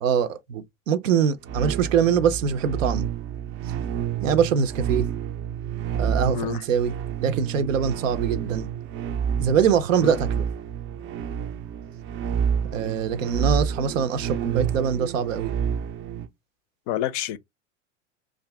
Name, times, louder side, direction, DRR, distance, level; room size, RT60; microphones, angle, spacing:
voice 1, 0.0-3.1 4.2-5.1 6.0-6.9 7.2-8.7 9.4-10.5 12.7-15.5, right 7 dB, 85° right, 0.6 m, -23 dB
sound 1, 1.4-16.3, right 8 dB, 35° right, 0.4 m, -29 dB
voice 2, 16.9-17.4, left 11 dB, 50° left, 0.4 m, -28 dB
2.5 x 2.4 x 3.2 m
hypercardioid pair, 95°, 38 cm